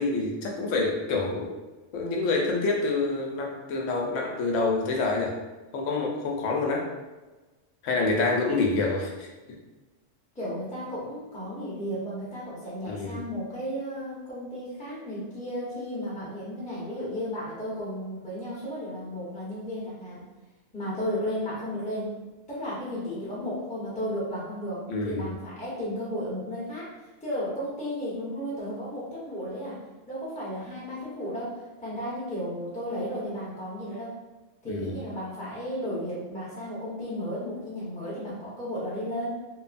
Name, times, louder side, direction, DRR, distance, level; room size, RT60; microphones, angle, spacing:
voice 1, 0.0-1.6 1.9-5.3 5.7-6.9 7.8-9.3 12.9-13.2 24.9-25.3 34.7-35.0, left 3 dB, 90° left, 0 dB, 1.0 m, -27 dB
voice 2, 10.3-20.2 20.7-22.2 22.5-26.9 27.2-29.8 30.1-34.1 34.6-39.3, equal, 5° left, -8 dB, 0.8 m, -34 dB
2.9 x 2.2 x 2.5 m, 1.2 s
omnidirectional pair, 1.2 m